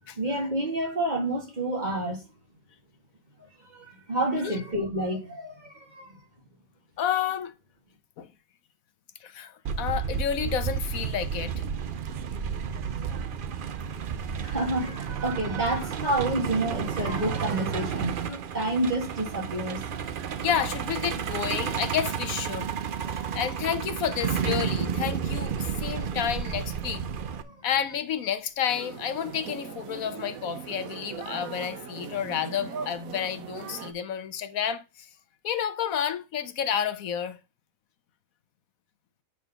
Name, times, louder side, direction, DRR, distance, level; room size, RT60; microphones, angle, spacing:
voice 1, 0.2-2.2 3.7-6.2 14.4-19.8 23.1-23.4 27.4-27.6, right 1 dB, 30° right, 2.0 m, -29 dB
voice 2, 7.0-7.5 8.2-8.3 9.2-11.6 20.4-22.7 23.3-27.0 27.6-35.1 35.4-37.4, left 9 dB, 80° left, 1.2 m, -30 dB
Truck, 9.7-27.4, right 7 dB, 55° right, 0.6 m, -31 dB
sound 1, 28.7-33.9, right 7 dB, 80° right, 1.3 m, -40 dB
8.4 x 4.0 x 5.6 m
omnidirectional pair, 1.5 m